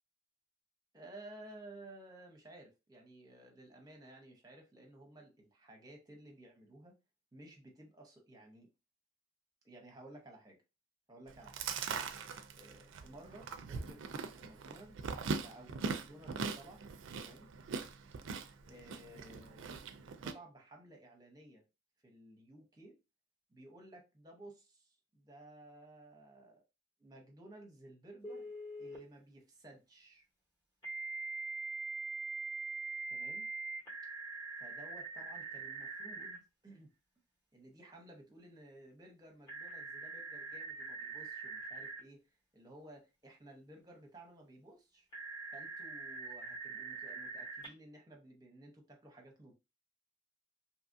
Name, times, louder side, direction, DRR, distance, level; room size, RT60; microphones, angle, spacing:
voice 1, 0.9-6.9 7.3-8.7 9.6-10.6 11.1-11.7 12.5-15.2 15.4-16.9 17.2-17.5 18.6-19.9 20.2-21.6 22.0-23.0 23.5-26.6 27.0-28.5 28.8-30.3 33.1-33.5 34.6-36.9 37.5-42.2 42.5-45.1 45.5-49.5, right 1 dB, 20° right, 0.8 m, -55 dB
Chewing mastication, 11.3-20.3, right 5 dB, 70° right, 0.4 m, -41 dB
Telephone, 28.2-29.0 30.8-36.4 39.5-42.0 45.1-47.7, right 3 dB, 20° left, 1.0 m, -43 dB
2.8 x 2.4 x 2.6 m
head